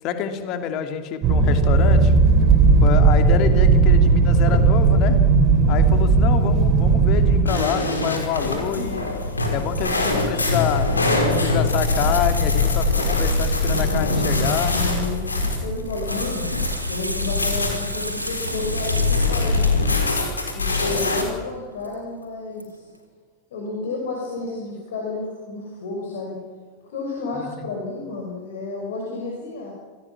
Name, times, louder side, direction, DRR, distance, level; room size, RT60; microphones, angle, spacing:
voice 1, 0.0-2.1 2.8-5.2 5.7-9.1 9.5-10.9 11.3-14.8 27.3-27.7, left 8 dB, 40° left, 6 dB, 2.8 m, -27 dB
sound 1, 1.2-7.4, right 4 dB, 35° right, 3.8 m, -16 dB
sound 2, 7.5-21.2, left 2 dB, 80° left, 4.9 m, -23 dB
voice 2, 14.7-16.5 16.9-20.0 20.5-22.9 23.5-26.4 26.9-29.7, left 3 dB, 60° left, 0 dB, 6.3 m, -31 dB
Water tap faucet / Sink (filling or washing), 16.1-20.4 21.8-21.9 22.2-22.3 22.6-22.7, equal, 90° right, 4.0 m, -32 dB
27.5 x 18.5 x 7.4 m, 1.5 s
figure-of-eight pair, 90°, 0 cm